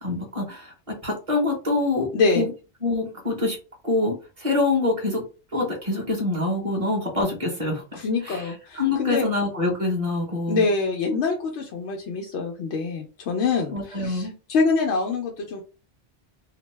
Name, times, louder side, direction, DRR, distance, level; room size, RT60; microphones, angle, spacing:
voice 1, 0.0-2.5 2.8-3.6 3.8-5.2 5.5-10.7 13.7-14.3, left 2 dB, 35° right, 0 dB, 1.0 m, -26 dB
voice 2, 2.1-2.5 8.0-9.3 10.5-15.6, left 4 dB, 90° left, 1 dB, 0.9 m, -25 dB
2.8 x 2.1 x 3.1 m, 0.33 s
omnidirectional pair, 1.1 m